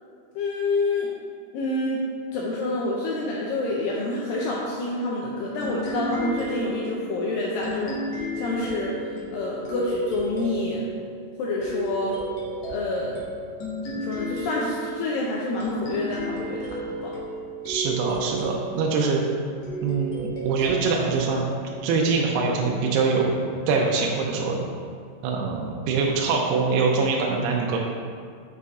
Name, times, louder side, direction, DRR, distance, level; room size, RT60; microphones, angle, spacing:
voice 1, 0.4-1.1 1.5-2.0 2.3-8.9 9.3-10.9 11.4-12.2 12.7-13.2 13.8-17.1, left 2 dB, 85° left, -4 dB, 2.0 m, -28 dB
sound 1, 5.6-22.8, right 1 dB, 60° left, 2.0 m, -34 dB
voice 2, 17.7-19.2 19.8-21.4 21.8-23.4 23.7-24.6 25.2-27.8, right 4 dB, 80° right, -1 dB, 2.5 m, -23 dB
6.5 x 5.4 x 3.6 m, 2.1 s
omnidirectional pair, 4.8 m